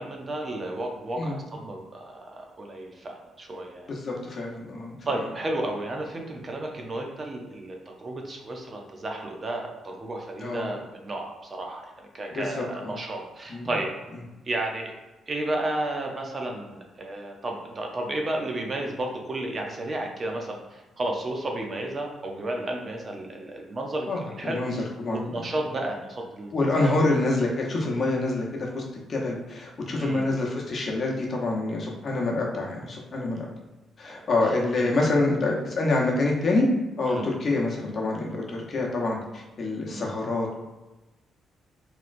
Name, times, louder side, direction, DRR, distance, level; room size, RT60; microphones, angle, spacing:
voice 1, 0.0-3.9 5.1-13.9 14.5-14.9 15.3-26.9 29.9-30.3 34.1-34.2 34.8-34.9 37.1-37.3 39.9-40.1, right 1 dB, 35° right, 1 dB, 0.5 m, -32 dB
voice 2, 3.9-5.0 10.4-10.7 12.3-13.0 13.5-13.7 24.1-25.5 26.5-28.4 28.7-28.8 29.1-33.5 34.0-36.7 37.0-40.5, left 2 dB, 45° left, -2 dB, 0.8 m, -26 dB
3.0 x 2.9 x 2.5 m, 1.1 s
cardioid pair, 90°, 0 cm